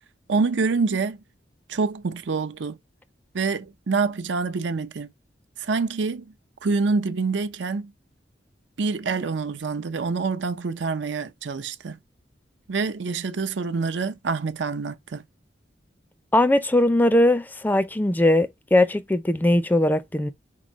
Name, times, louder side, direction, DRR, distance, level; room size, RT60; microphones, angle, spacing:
voice 1, 0.3-1.2 1.7-2.8 3.3-5.1 5.6-6.3 6.6-7.9 8.8-12.0 12.7-15.2, right 4 dB, 90° right, 0.6 m, -26 dB
voice 2, 16.3-20.3, left 1 dB, 10° left, 0.4 m, -20 dB
4.5 x 3.8 x 3.0 m
head